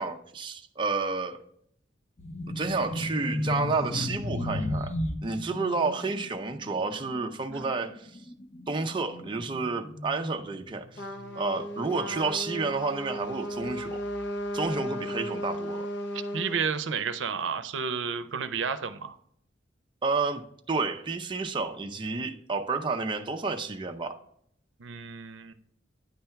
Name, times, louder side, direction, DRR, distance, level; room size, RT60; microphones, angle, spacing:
voice 1, 0.0-1.4 2.5-4.9 5.2-8.1 8.7-11.0 11.4-14.0 14.5-15.9 20.0-20.4 20.7-24.2, right 4 dB, 25° right, 4 dB, 0.5 m, -30 dB
sound 1, 2.2-12.2 12.4-12.7 13.5-14.5, left 1 dB, 35° left, 0.6 m, -35 dB
Trumpet, 11.0-16.6, equal, 65° left, 0.9 m, -35 dB
voice 2, 16.3-19.2 24.8-25.5, right 6 dB, 80° right, 11 dB, 0.6 m, -31 dB
9.6 x 3.4 x 5.7 m, 0.68 s
head